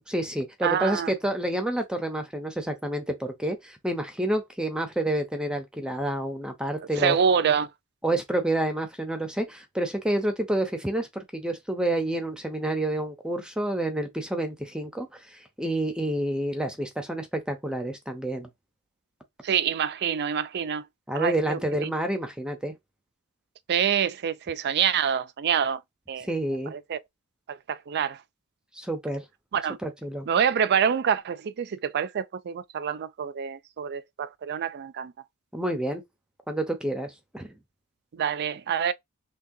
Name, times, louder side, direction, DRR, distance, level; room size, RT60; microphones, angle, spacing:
voice 1, 0.0-7.2 8.0-18.5 21.1-22.7 26.3-26.7 28.7-29.2 29.8-30.3 35.5-36.0 36.5-37.5, right 1 dB, 5° right, 0.6 m, -29 dB
voice 2, 0.6-1.1 7.0-7.7 19.4-20.9 21.1-21.9 23.7-25.8 26.1-26.3 26.7-27.0 27.5-28.2 29.5-29.8 30.3-35.1 38.1-38.9, right 7 dB, 50° right, 0.4 m, -26 dB
5.9 x 2.3 x 2.7 m
head